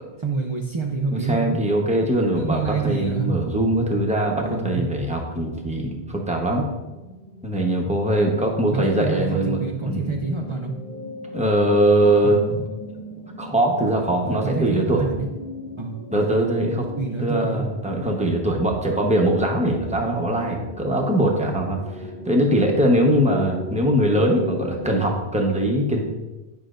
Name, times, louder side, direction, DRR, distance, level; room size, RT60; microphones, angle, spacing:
voice 1, 0.2-1.6 2.2-3.3 4.4-4.9 8.7-10.7 12.2-12.6 14.3-15.3 15.8-16.1 17.0-17.6, right 4 dB, 35° right, 1 dB, 0.5 m, -27 dB
voice 2, 1.1-6.7 7.4-10.0 11.3-12.4 13.4-15.0 16.1-16.9 17.2-21.8 22.2-26.0, right 1 dB, 5° right, 0 dB, 0.9 m, -21 dB
sound 1, 6.9-25.1, left 1 dB, 55° left, 1.8 m, -38 dB
10.0 x 5.8 x 2.5 m, 1.1 s
omnidirectional pair, 1.1 m